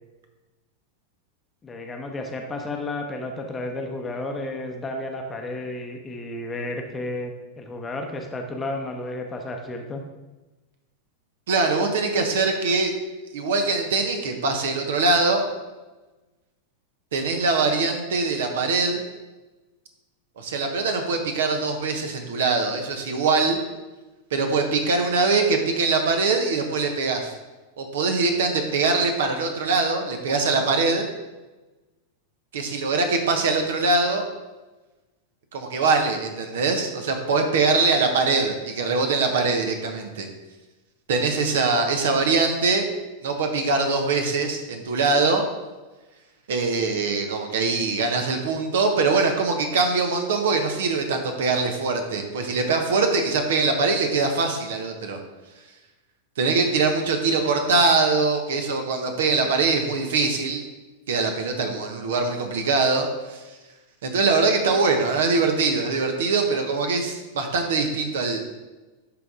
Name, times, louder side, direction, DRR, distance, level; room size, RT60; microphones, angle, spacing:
voice 1, 1.6-10.0, left 2 dB, 15° left, 3 dB, 0.9 m, -32 dB
voice 2, 11.5-12.9 13.3-15.4 17.1-19.0 20.4-23.6 24.3-27.4 27.8-31.1 32.5-34.3 35.5-40.3 41.1-42.9 43.2-45.4 46.5-55.2 56.4-60.7 61.1-63.4 64.0-68.4, right 3 dB, 60° right, 5 dB, 1.1 m, -22 dB
11.5 x 4.0 x 3.7 m, 1.1 s
figure-of-eight pair, 90°, 0 cm